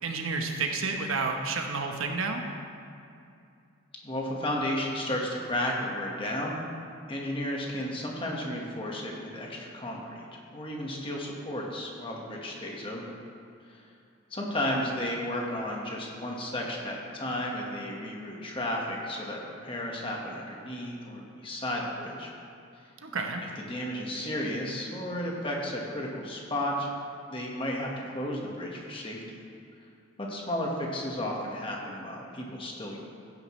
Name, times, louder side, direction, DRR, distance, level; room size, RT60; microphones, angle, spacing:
voice 1, 0.0-2.4 23.0-23.4, right 4 dB, 75° right, 3 dB, 1.1 m, -30 dB
voice 2, 4.0-6.6 7.1-10.2 10.5-13.0 14.3-22.3 23.7-26.9 27.3-29.2 30.2-33.0, left 1 dB, 25° left, -2 dB, 1.5 m, -33 dB
15.5 x 9.4 x 3.2 m, 2.5 s
head